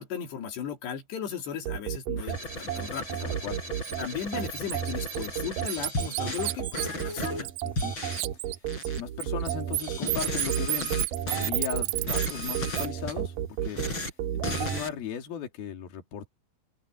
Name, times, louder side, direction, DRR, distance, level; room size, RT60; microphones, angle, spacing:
voice 1, 0.0-3.2 4.0-7.5, left 8 dB, 85° left, 5.6 m, -36 dB
sound 1, 1.7-14.8, right 10 dB, 60° right, 3.0 m, -33 dB
sound 2, 2.2-7.4 7.8-8.2 8.7-9.0 9.8-11.5 11.9-13.1 13.6-14.1 14.4-14.9, left 2 dB, 25° left, 8.4 m, -36 dB
voice 2, 3.2-3.6 7.6-7.9 8.8-10.9 11.3-13.4 13.6-16.3, left 8 dB, 65° left, 4.8 m, -37 dB
Bird, 3.8-4.0 4.4-7.9 8.1-12.9, right 20 dB, 80° right, 2.4 m, -32 dB
open air
omnidirectional pair, 4.8 m